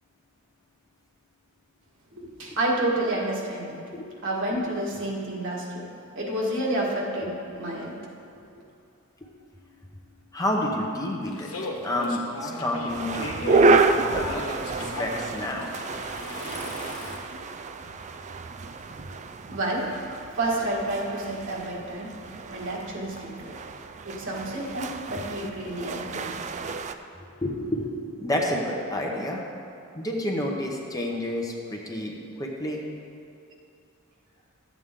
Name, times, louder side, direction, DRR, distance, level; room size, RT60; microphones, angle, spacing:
voice 1, 2.1-3.8 4.2-5.9 6.2-8.1 19.1-19.2 19.5-20.0 20.3-22.1 22.5-23.5 24.0-26.4, right 1 dB, 60° right, -4 dB, 1.8 m, -29 dB
voice 2, 10.3-11.5 11.8-14.4 14.8-15.7 27.2-29.4 29.9-32.8, left 1 dB, 15° left, -1 dB, 0.9 m, -30 dB
sound 1, 11.3-17.2, left 2 dB, 75° left, 1.3 m, -37 dB
sound 2, 12.9-26.9, right 3 dB, 35° right, 0.4 m, -29 dB
12.5 x 8.2 x 3.7 m, 2.6 s
head